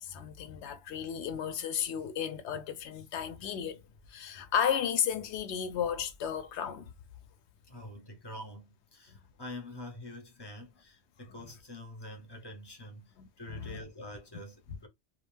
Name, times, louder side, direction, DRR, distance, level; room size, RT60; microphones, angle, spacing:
voice 1, 0.0-3.8 4.1-6.9 13.2-13.8, left 8 dB, 85° left, 0.9 m, -33 dB
voice 2, 7.6-14.9, left 1 dB, 30° left, 0.6 m, -46 dB
2.4 x 2.3 x 3.2 m
omnidirectional pair, 1.1 m